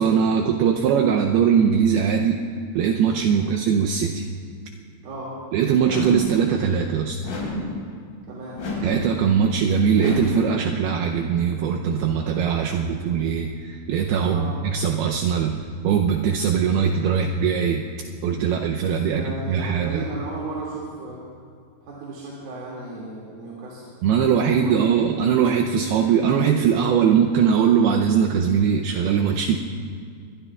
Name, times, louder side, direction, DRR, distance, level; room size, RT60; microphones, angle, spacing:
voice 1, 0.0-2.4 2.8-4.3 5.5-7.2 8.8-17.8 18.2-20.0 24.0-29.6, right 7 dB, 85° right, 2 dB, 2.2 m, -21 dB
sound 1, 5.8-6.4 7.2-7.8 8.6-9.1 10.0-10.5, left 1 dB, 85° left, 6.5 m, -29 dB
voice 2, 8.3-8.6 14.2-14.5 18.8-21.2 21.8-23.9 24.4-24.7 25.1-25.2, right 2 dB, 60° right, -6 dB, 4.0 m, -35 dB
25.5 x 22.5 x 2.4 m, 2.2 s
omnidirectional pair, 5.3 m